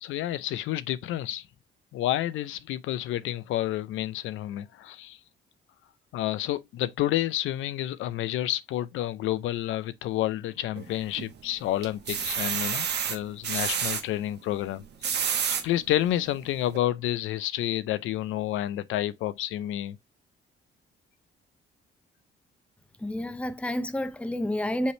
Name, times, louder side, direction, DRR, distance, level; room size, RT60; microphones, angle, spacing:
voice 1, 0.0-1.5 1.9-5.2 6.1-20.0, left 13 dB, 80° left, 0.4 m, -30 dB
sound 1, 10.7-11.4 11.8-14.0 14.8-15.6 16.2-16.3 16.7-16.8, right 7 dB, 60° right, 1.0 m, -29 dB
voice 2, 23.0-24.9, left 1 dB, 5° left, 0.6 m, -30 dB
5.4 x 3.2 x 3.0 m
cardioid pair, 90°, 20 cm